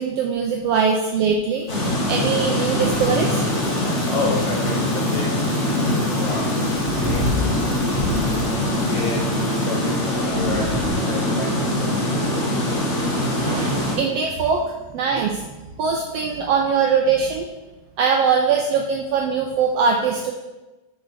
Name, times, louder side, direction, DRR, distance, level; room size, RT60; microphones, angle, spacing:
voice 1, 0.0-3.4 13.4-14.6 14.9-15.4 15.8-17.5 18.0-20.3, right 6 dB, 85° right, 2 dB, 1.4 m, -21 dB
sound 1, 1.7-14.0, left 1 dB, 30° left, 1.4 m, -23 dB
Bicycle, 2.8-10.9, left 2 dB, ahead, 1.0 m, -30 dB
voice 2, 4.1-6.7 7.0-7.2 8.8-12.9 15.8-15.9 16.3-16.5, left 4 dB, 75° left, 0 dB, 1.4 m, -31 dB
6.2 x 5.3 x 4.8 m, 1.1 s
omnidirectional pair, 3.4 m